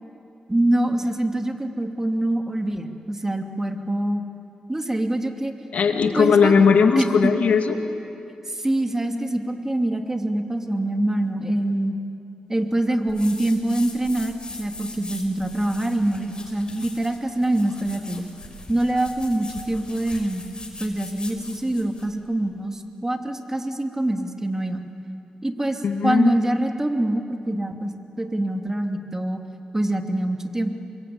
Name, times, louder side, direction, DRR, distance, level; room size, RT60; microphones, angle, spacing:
voice 1, 0.5-4.2 4.7-5.5 6.2-6.6 7.0-7.3 8.5-11.9 12.5-18.3 18.7-20.4 20.8-24.8 25.4-27.9 28.2-29.4 29.7-30.7, right 1 dB, 20° right, 4 dB, 2.9 m, -24 dB
voice 2, 5.7-7.8 25.8-26.3, left 5 dB, 75° left, 5 dB, 2.3 m, -18 dB
sound 1, 13.1-22.1, left 2 dB, 35° left, 5.6 m, -41 dB
27.0 x 22.5 x 8.9 m, 2.7 s
cardioid pair, 50°, 2 cm